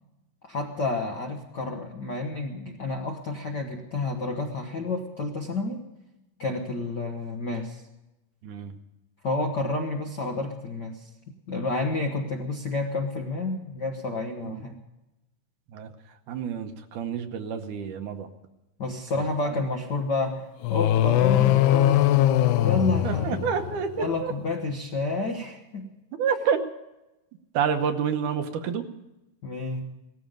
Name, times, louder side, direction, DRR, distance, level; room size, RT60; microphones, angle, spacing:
voice 1, 0.4-5.8 6.4-7.8 9.2-11.1 11.5-14.8 18.8-23.4 24.0-25.9 29.4-29.9, left 3 dB, 60° left, 2 dB, 1.1 m, -30 dB
voice 2, 8.4-8.7 14.4-14.5 15.7-15.9 16.3-18.3 23.0-24.3 26.2-26.6 27.5-28.9, right 7 dB, 75° right, 7 dB, 2.3 m, -28 dB
sound 1, 20.6-24.0, left 13 dB, 75° left, 1.8 m, -21 dB
17.5 x 14.5 x 5.2 m, 0.98 s
omnidirectional pair, 3.9 m